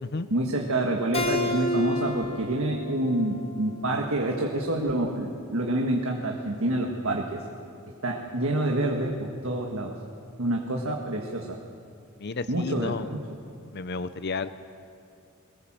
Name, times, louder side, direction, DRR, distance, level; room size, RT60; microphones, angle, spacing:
voice 1, 0.3-7.4 8.0-9.9 10.4-11.6 12.5-12.9, right 1 dB, 70° right, 1 dB, 1.7 m, -27 dB
Keyboard (musical), 1.1-4.4, left 2 dB, 30° left, 2.9 m, -31 dB
voice 2, 12.2-13.1 13.7-14.5, left 4 dB, 50° left, 12 dB, 0.6 m, -32 dB
22.5 x 19.5 x 7.4 m, 2.4 s
head